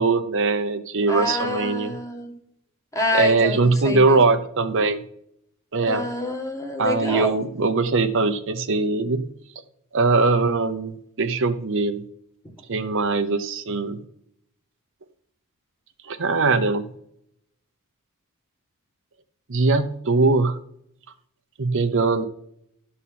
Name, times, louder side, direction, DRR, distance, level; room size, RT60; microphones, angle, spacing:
voice 1, 0.0-1.9 3.1-5.0 5.7-6.0 6.8-9.2 9.9-12.0 12.7-14.0 16.1-16.9 19.5-20.6 21.6-22.3, right 3 dB, 60° right, 9 dB, 0.7 m, -21 dB
voice 2, 1.1-2.3 2.9-4.2 5.8-7.3, left 1 dB, 15° left, 3 dB, 1.6 m, -27 dB
12.5 x 4.2 x 7.5 m, 0.72 s
head